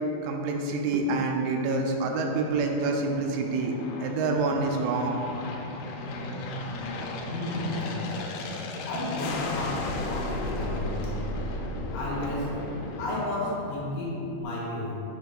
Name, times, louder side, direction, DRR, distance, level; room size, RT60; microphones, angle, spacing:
voice 1, 0.2-3.7 4.0-5.2, right 3 dB, 85° right, 2 dB, 2.7 m, -27 dB
Aircraft, 1.4-14.1, left 2 dB, 85° left, 2.6 m, -35 dB
voice 2, 7.3-7.9 8.9-11.2 11.9-12.6 13.0-14.9, left 1 dB, 70° left, -4 dB, 2.6 m, -32 dB
8.4 x 3.8 x 5.1 m, 2.8 s
omnidirectional pair, 4.4 m